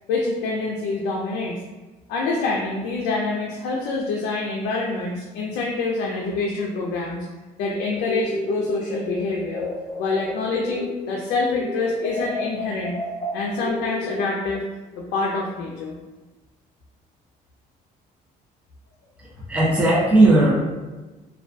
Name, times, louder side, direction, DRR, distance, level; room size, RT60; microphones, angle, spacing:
voice 1, 0.1-1.6 2.1-7.3 7.6-9.7 10.0-13.0 13.3-14.6 15.0-16.0, left 3 dB, 80° left, -2 dB, 0.4 m, -26 dB
sound 1, 8.0-11.3 11.6-14.6, left 1 dB, 30° left, 0.7 m, -32 dB
voice 2, 19.2-20.5, right 2 dB, 5° right, -5 dB, 0.5 m, -17 dB
2.2 x 2.2 x 2.5 m, 1.2 s
cardioid pair, 110°, 17 cm